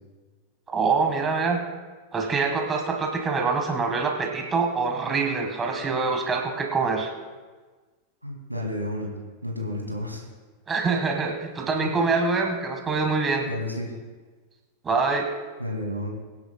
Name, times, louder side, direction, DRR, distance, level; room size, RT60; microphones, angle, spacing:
voice 1, 0.7-1.6 2.1-7.1 10.7-13.5 14.8-15.3, right 4 dB, 20° right, 3 dB, 1.5 m, -25 dB
voice 2, 8.2-9.1 9.4-10.2 13.5-13.9 15.6-16.1, left 1 dB, 90° right, 0 dB, 2.4 m, -31 dB
23.5 x 10.0 x 2.3 m, 1.3 s
figure-of-eight pair, 90°, 0 cm